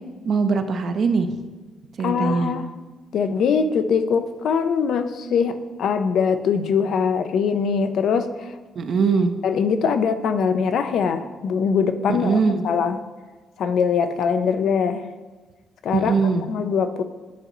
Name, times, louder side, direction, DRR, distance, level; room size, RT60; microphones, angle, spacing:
voice 1, 0.3-1.3 2.0-2.5 8.8-9.3 12.1-12.6 15.9-16.5, right 5 dB, 55° right, 7 dB, 0.5 m, -21 dB
voice 2, 2.0-2.7 3.1-8.5 9.4-12.4 12.6-13.0 13.6-15.1 15.8-16.1 16.5-17.0, left 6 dB, 70° left, 10 dB, 0.4 m, -22 dB
10.0 x 3.9 x 3.0 m, 1.3 s
cardioid pair, 90°, 0 cm